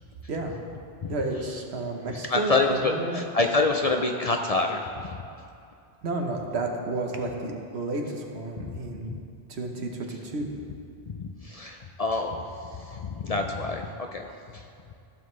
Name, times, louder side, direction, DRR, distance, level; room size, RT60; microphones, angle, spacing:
voice 1, 1.1-3.2 6.0-9.1 9.5-10.5, right 2 dB, 80° right, 2 dB, 1.3 m, -31 dB
voice 2, 2.3-5.2 8.6-8.8 9.1-9.2 11.1-14.6, left 3 dB, 50° left, 3 dB, 0.5 m, -27 dB
15.0 x 7.3 x 3.2 m, 2.5 s
omnidirectional pair, 1.1 m